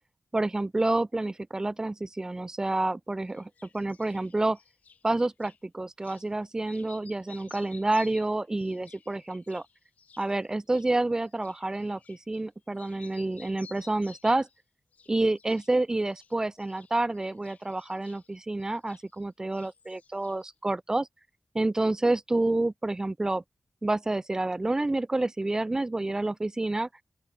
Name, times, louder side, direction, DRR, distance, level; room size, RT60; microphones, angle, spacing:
voice 1, 0.3-4.6 5.0-9.6 10.2-14.5 15.1-21.1 21.5-23.4 23.8-26.9, right 2 dB, 25° right, 0.5 m, -28 dB
sound 1, 3.3-5.6 6.0-6.3 6.6-12.5 12.7-14.6 14.9-15.7 16.0-19.3 19.5-20.6, left 6 dB, 90° left, 5.2 m, -56 dB
open air
cardioid pair, 65°, 2 cm